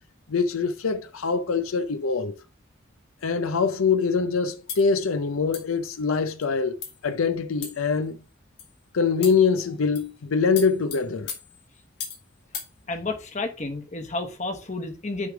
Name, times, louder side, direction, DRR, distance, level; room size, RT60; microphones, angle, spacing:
voice 1, 0.3-2.4 3.2-6.8 7.0-8.2 8.9-11.3, left 5 dB, 80° left, 0.6 m, -24 dB
sound 1, 4.7-4.9 5.5-5.8 6.4-6.5 6.8-7.1 7.6-8.0 8.6-8.8 9.2-9.5 10.0-10.2 10.6-12.3 12.5-12.7, left 7 dB, 55° left, 1.7 m, -37 dB
voice 2, 12.9-15.3, left 3 dB, 35° left, 1.1 m, -31 dB
9.6 x 3.3 x 4.8 m
head